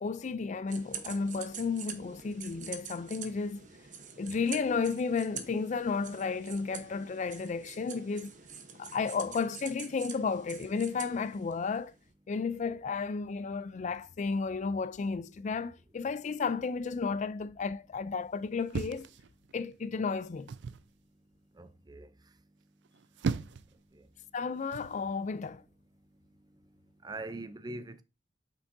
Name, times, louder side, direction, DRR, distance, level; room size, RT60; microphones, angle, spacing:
voice 1, 0.0-3.6 4.2-8.3 8.8-11.9 12.3-19.1 19.5-20.5 24.3-25.6, left 5 dB, 40° left, 0.4 m, -33 dB
sound 1, 0.7-11.9, right 7 dB, 45° right, 1.0 m, -46 dB
sound 2, 18.7-19.8 20.5-20.9 22.8-23.7 24.7-25.0, right 5 dB, 75° right, 0.4 m, -36 dB
voice 2, 21.6-22.1 24.0-24.1 27.0-28.0, right 2 dB, 25° right, 0.5 m, -42 dB
8.0 x 6.1 x 2.6 m
head